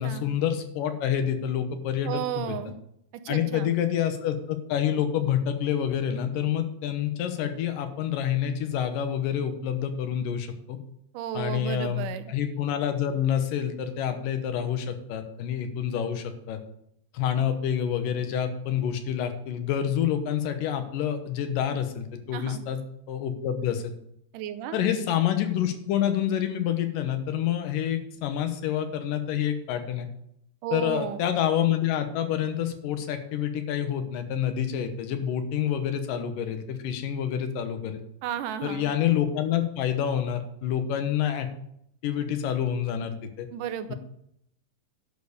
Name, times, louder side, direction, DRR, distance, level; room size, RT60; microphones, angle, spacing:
voice 1, 0.0-2.6 3.3-10.8 11.3-16.6 17.1-22.8 23.1-23.9 24.7-30.1 30.7-38.0 38.6-41.5 42.0-43.5 43.9-44.0, left 9 dB, 85° left, 8 dB, 2.7 m, -27 dB
voice 2, 2.1-2.8 3.2-3.7 11.1-12.3 22.3-22.6 24.3-24.8 30.6-31.2 38.2-38.9 43.5-43.9, right 10 dB, 80° right, 10 dB, 2.2 m, -33 dB
11.0 x 5.4 x 6.6 m, 0.75 s
omnidirectional pair, 3.8 m